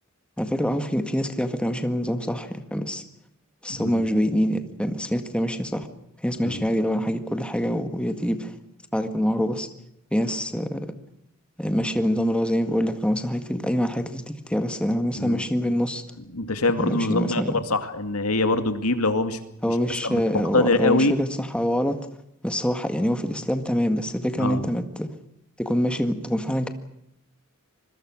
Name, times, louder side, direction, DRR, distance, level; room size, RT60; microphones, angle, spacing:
voice 1, 0.4-3.0 3.6-5.9 6.2-8.6 8.9-9.7 10.1-10.9 11.6-16.0 16.8-17.6 19.6-22.0 22.4-25.1 25.6-26.7, equal, 5° left, 8 dB, 1.8 m, -25 dB
voice 2, 3.7-4.1 6.4-6.7 15.2-15.4 16.3-19.4 19.7-19.8 20.0-20.2 20.5-21.1 24.4-24.7, left 2 dB, 90° left, 9 dB, 2.3 m, -24 dB
26.0 x 22.0 x 6.4 m, 0.77 s
head